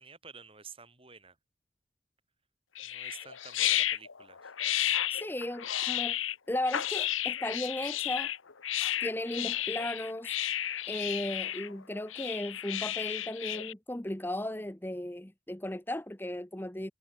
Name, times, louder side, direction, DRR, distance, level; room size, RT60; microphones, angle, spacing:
voice 1, 0.0-1.4 2.8-4.5, right 5 dB, 30° right, 4.4 m, -51 dB
sound 1, 2.8-13.7, left 12 dB, 85° left, 1.2 m, -32 dB
voice 2, 5.1-6.2 6.5-8.3 9.0-10.4 10.9-16.9, left 1 dB, 10° left, 0.9 m, -36 dB
head